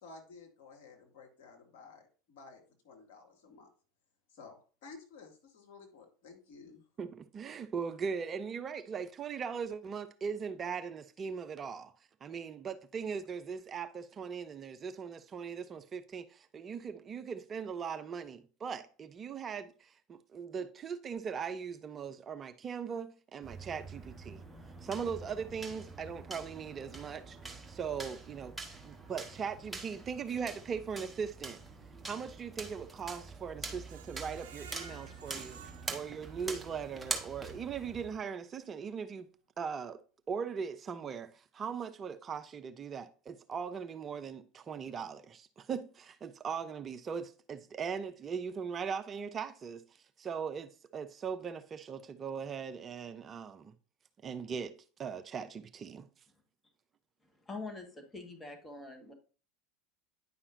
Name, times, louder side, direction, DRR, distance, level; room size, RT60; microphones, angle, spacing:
voice 1, 0.0-3.7 4.3-6.8, left 4 dB, 60° left, 2.3 m, -54 dB
voice 2, 7.0-11.9 12.2-24.4 24.8-27.4 27.7-28.5 28.8-31.6 32.1-35.6 35.9-39.3 39.6-40.0 40.3-49.8 50.2-53.7 54.2-56.1, right 6 dB, 30° right, 0.5 m, -39 dB
sound 1, 23.4-38.2, right 3 dB, 10° right, 1.4 m, -45 dB
Screech, 33.9-36.9 37.3-37.4 37.8-37.9, right 6 dB, 65° right, 0.7 m, -53 dB
voice 3, 57.4-59.1, left 3 dB, 15° left, 1.5 m, -44 dB
9.8 x 5.6 x 2.6 m
figure-of-eight pair, 75°, 0 cm